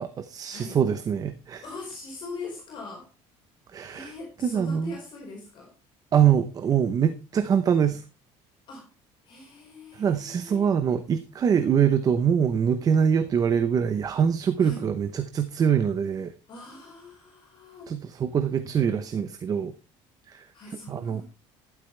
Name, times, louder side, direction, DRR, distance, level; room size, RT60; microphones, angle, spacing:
voice 1, 0.0-1.6 3.7-4.1 4.4-4.9 6.1-8.0 9.9-16.3 17.9-19.7 20.3-20.5 20.9-21.2, right 7 dB, 30° right, 0.9 m, -24 dB
voice 2, 1.6-3.1 3.9-5.7 8.7-8.9 9.2-10.7 14.6-14.9 16.5-17.9 20.5-21.2, left 2 dB, 40° left, 4.9 m, -41 dB
12.5 x 12.0 x 3.3 m
cardioid pair, 165°, 13 cm